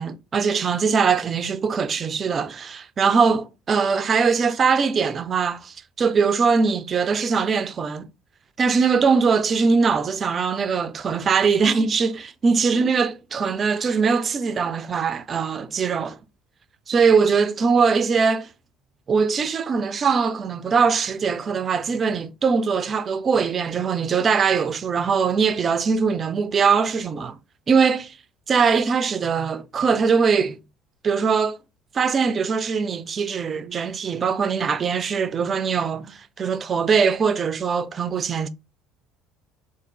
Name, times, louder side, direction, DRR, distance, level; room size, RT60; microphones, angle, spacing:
voice 1, 0.0-8.1 8.6-16.2 16.9-18.5 19.1-27.4 27.7-28.1 28.5-30.6 31.0-31.6 31.9-38.5, right 5 dB, 40° right, 0.6 m, -21 dB
3.8 x 2.7 x 4.5 m
hypercardioid pair, 75°, 0 cm